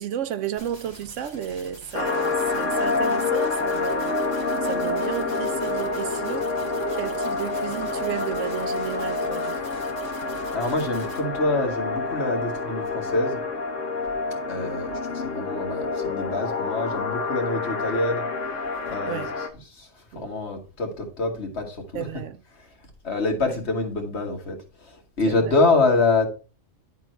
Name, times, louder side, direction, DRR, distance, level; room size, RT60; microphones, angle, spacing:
voice 1, 0.0-6.5 6.9-9.9 19.1-19.4 20.1-20.3 21.9-22.4 23.4-23.6 25.3-25.6, right 9 dB, 75° right, 1.0 m, -33 dB
sound 1, 0.6-11.2, right 1 dB, 20° right, 2.2 m, -46 dB
sound 2, 1.9-19.5, left 3 dB, 75° left, 1.3 m, -28 dB
voice 2, 10.5-13.4 14.5-18.2 18.9-19.2 19.8-19.9 20.2-22.1 23.0-24.6 24.9-26.3, left 3 dB, 60° left, 1.9 m, -25 dB
11.0 x 3.7 x 4.5 m
omnidirectional pair, 1.3 m